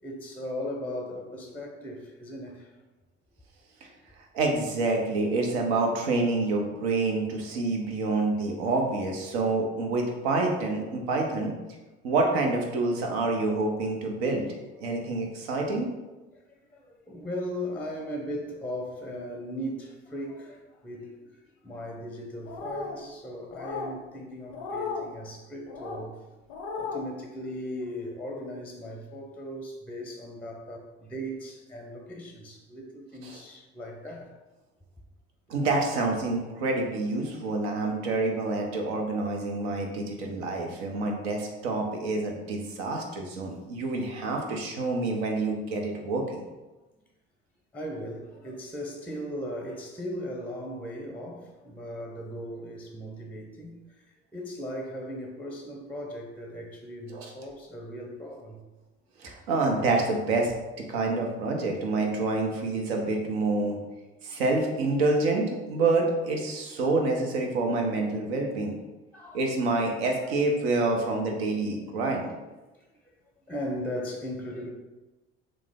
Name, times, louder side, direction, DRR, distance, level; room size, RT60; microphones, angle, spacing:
voice 1, 0.0-2.7 8.1-8.2 16.3-26.1 26.8-34.3 40.4-40.8 44.7-45.0 47.7-58.6 63.5-63.8 64.3-64.4 66.8-66.9 69.1-69.4 70.2-70.5 72.7-73.0 73.5-74.7, equal, 5° left, 2 dB, 0.5 m, -38 dB
voice 2, 4.3-11.5 12.0-15.9 33.2-33.4 35.5-46.4 57.1-57.3 59.2-60.5 60.9-63.8 64.2-68.7 69.3-72.3, right 3 dB, 90° right, 1 dB, 0.6 m, -27 dB
sound 1, 22.5-23.0 23.5-24.0 24.5-25.1 25.7-26.0 26.5-27.0, left 4 dB, 85° left, 0.5 m, -35 dB
3.1 x 2.0 x 3.4 m, 1.1 s
hypercardioid pair, 60°, 30 cm